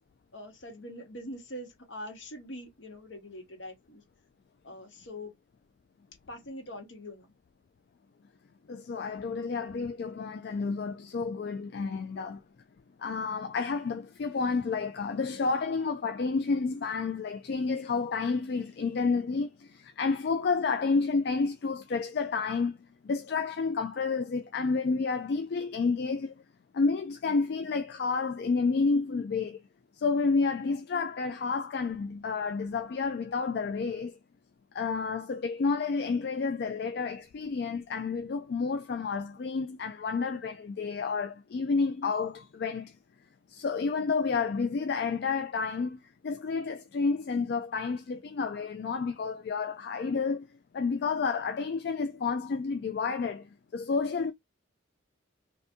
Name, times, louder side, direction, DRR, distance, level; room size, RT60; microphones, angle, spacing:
voice 1, 0.3-4.0 4.6-5.3 6.3-7.3, left 1 dB, 70° left, 1.4 m, -43 dB
voice 2, 8.7-12.4 13.0-22.8 23.0-26.3 26.7-29.6 29.9-34.2 34.7-43.0 43.5-50.5 50.7-54.3, left 4 dB, 55° left, 0.3 m, -30 dB
2.7 x 2.6 x 3.5 m
head